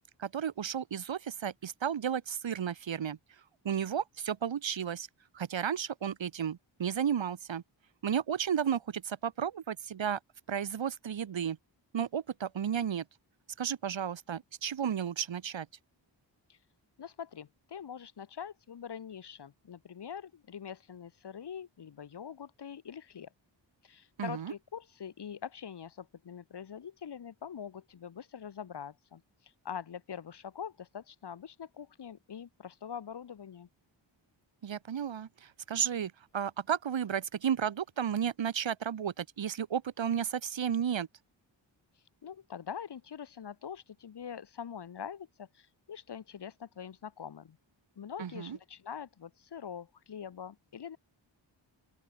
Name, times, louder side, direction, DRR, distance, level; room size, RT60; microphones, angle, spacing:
voice 1, 0.0-3.2 3.6-5.1 5.3-7.6 8.0-10.2 10.5-11.6 11.9-13.0 13.6-15.7 24.2-24.5 34.6-41.1 48.2-48.6, right 8 dB, 75° right, 1.0 m, -33 dB
voice 2, 17.0-23.3 23.8-33.7 42.2-47.6 48.0-51.0, left 8 dB, 60° left, 0.9 m, -44 dB
open air
wide cardioid pair, 60°, 47 cm